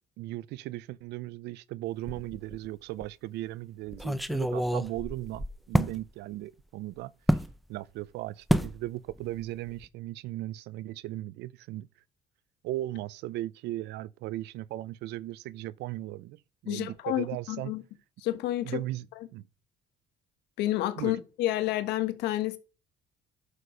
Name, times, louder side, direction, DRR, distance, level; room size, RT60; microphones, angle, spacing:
voice 1, 0.2-7.4 7.7-11.9 12.6-17.7 18.6-19.1 19.3-19.4 21.0-21.2, right 16 dB, 85° right, 0.6 m, -37 dB
sound 1, 2.1-2.7 3.0-3.1 3.9-6.0 7.3-7.5 8.5-8.8 9.1-9.4 9.7-9.9, equal, ahead, 0.6 m, -28 dB
voice 2, 16.7-17.8 18.2-18.8 20.6-22.6, left 14 dB, 90° left, 1.4 m, -30 dB
11.0 x 6.6 x 5.2 m
cardioid pair, 110°, 17 cm